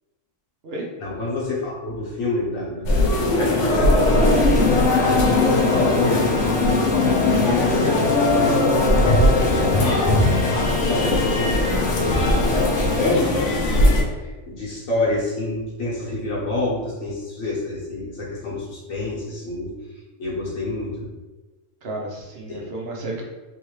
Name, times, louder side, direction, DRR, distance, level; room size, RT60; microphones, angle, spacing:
voice 1, 1.0-10.4 10.9-19.7 20.2-21.1 22.5-22.6, left 2 dB, 90° left, -5 dB, 1.6 m, -28 dB
sound 1, 2.8-14.0, left 2 dB, 70° left, 1.1 m, -19 dB
sound 2, 4.0-13.0, left 4 dB, 5° left, 1.0 m, -29 dB
voice 2, 21.8-23.2, right 2 dB, 55° right, -1 dB, 0.9 m, -32 dB
3.5 x 3.3 x 3.2 m, 1.2 s
omnidirectional pair, 1.4 m